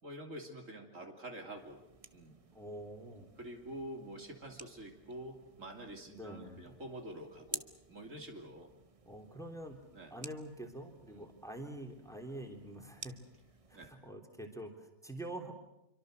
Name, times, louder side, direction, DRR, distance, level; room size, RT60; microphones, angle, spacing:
voice 1, 0.0-1.8 2.1-2.4 3.4-8.7 9.9-10.2 11.1-11.3 13.7-13.9, right 1 dB, 60° right, 3 dB, 3.4 m, -47 dB
sound 1, 1.6-14.0, right 4 dB, 25° right, 1.0 m, -53 dB
voice 2, 2.5-3.3 6.1-6.7 9.0-9.8 10.1-13.2 13.7-15.5, right 1 dB, ahead, 3 dB, 3.4 m, -46 dB
27.0 x 24.5 x 6.6 m, 0.91 s
omnidirectional pair, 1.5 m